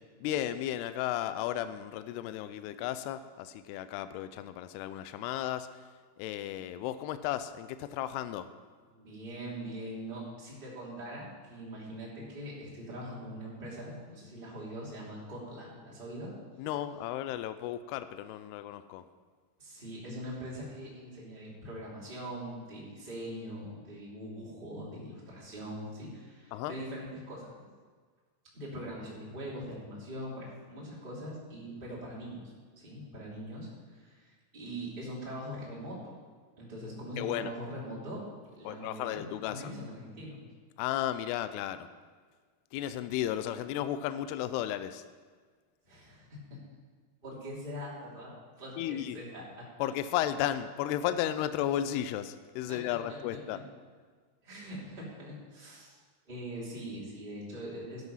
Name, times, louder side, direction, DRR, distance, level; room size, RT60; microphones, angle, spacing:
voice 1, 0.2-5.8 6.2-8.5 16.6-19.0 26.5-26.7 37.2-37.5 38.7-39.7 40.8-41.9 42.7-45.0 48.8-49.2 49.8-53.6, left 12 dB, 85° left, 12 dB, 2.5 m, -34 dB
voice 2, 8.9-16.3 19.6-27.5 28.5-32.4 32.8-36.1 36.6-38.2 38.6-40.4 45.8-46.6 47.2-48.3 48.6-49.6 52.7-52.8 53.1-53.4 54.4-56.0 56.3-58.0, equal, 15° right, -6 dB, 2.7 m, -42 dB
12.0 x 9.7 x 5.6 m, 1.5 s
omnidirectional pair, 4.7 m